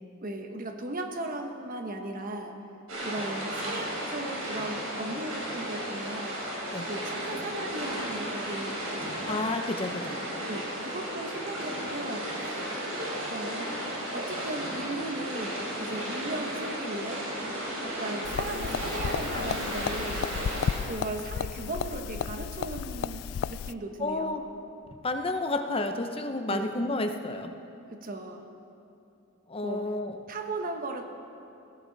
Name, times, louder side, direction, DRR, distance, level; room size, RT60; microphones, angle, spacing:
voice 1, 0.2-2.5 3.0-6.4 6.8-9.5 10.5-12.7 13.3-13.6 14.1-17.3 17.8-20.2 20.8-24.4 26.5-26.8 27.9-28.5 29.6-29.9 30.3-31.1, right 2 dB, 45° right, 5 dB, 1.2 m, -37 dB
sound 1, 2.9-20.8, equal, 90° right, 4.7 m, -34 dB
voice 2, 9.3-10.2 24.0-24.4 25.0-27.5 29.5-30.2, left 2 dB, 25° left, 6 dB, 0.8 m, -30 dB
sound 2, 18.2-23.7, left 8 dB, 85° left, 0.3 m, -33 dB
18.5 x 16.0 x 4.1 m, 2.7 s
head